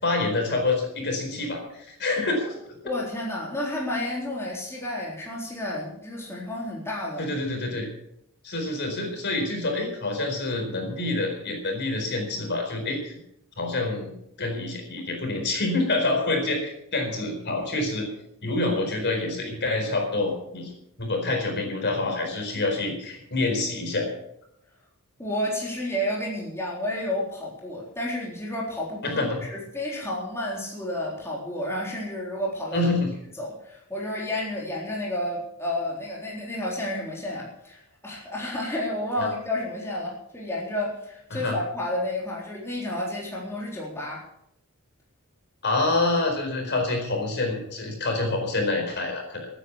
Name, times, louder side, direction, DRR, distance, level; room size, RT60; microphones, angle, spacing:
voice 1, 0.0-2.5 7.2-7.9 8.4-13.2 13.6-14.1 14.4-18.1 18.4-20.7 21.0-24.1 29.0-29.4 32.7-33.1 39.2-39.3 41.3-41.6 45.6-49.5, left 2 dB, 50° left, 2 dB, 4.5 m, -27 dB
voice 2, 2.8-7.3 25.2-32.9 33.4-44.2, left 1 dB, 10° left, -4 dB, 3.9 m, -31 dB
16.0 x 9.9 x 7.1 m, 0.76 s
head